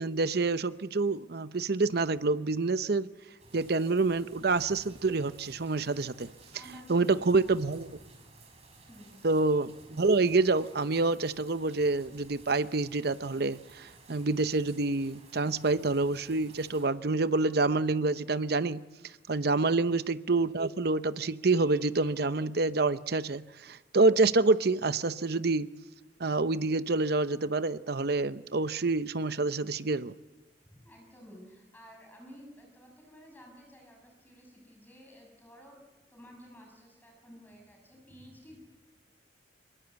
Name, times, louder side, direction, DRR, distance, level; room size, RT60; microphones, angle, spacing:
voice 1, 0.0-3.1 3.5-6.3 6.9-7.9 9.2-18.8 19.3-25.7 26.2-30.1, right 3 dB, 55° right, 0.8 m, -27 dB
sound 1, 3.4-16.9, right 2 dB, 35° right, 6.1 m, -55 dB
voice 2, 6.5-7.7 8.9-9.1 30.7-35.8 36.1-38.6, equal, 10° left, 6.2 m, -53 dB
24.0 x 22.5 x 8.1 m
head